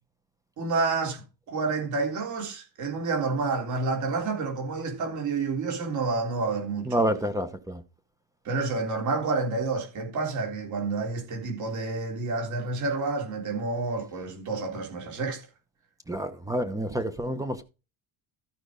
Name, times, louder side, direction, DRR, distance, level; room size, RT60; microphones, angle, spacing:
voice 1, 0.6-1.2 1.5-7.0 8.5-15.4 16.9-17.0, right 3 dB, 50° right, 3.6 m, -29 dB
voice 2, 6.9-7.8 16.1-17.6, right 1 dB, 10° right, 0.9 m, -28 dB
13.5 x 5.3 x 5.1 m
cardioid pair, 155°, 38 cm